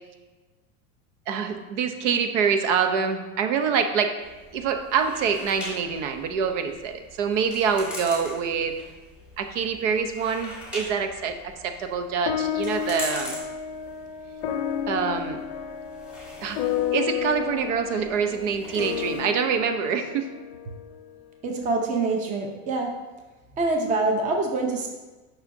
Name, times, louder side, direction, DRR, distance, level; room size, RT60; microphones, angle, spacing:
voice 1, 1.3-4.1 4.5-8.8 9.4-11.4 11.6-13.4 14.9-15.4 16.4-16.6 16.9-20.3, right 6 dB, 70° right, 7 dB, 0.8 m, -25 dB
sound 1, 4.2-19.2, left 1 dB, 5° right, 1.3 m, -42 dB
sound 2, 12.3-20.9, left 9 dB, 45° left, 0.6 m, -31 dB
voice 2, 21.4-22.9 23.5-24.9, right 3 dB, 20° right, 2 dB, 0.7 m, -25 dB
9.7 x 5.7 x 2.6 m, 1.2 s
supercardioid pair, 165°, 39 cm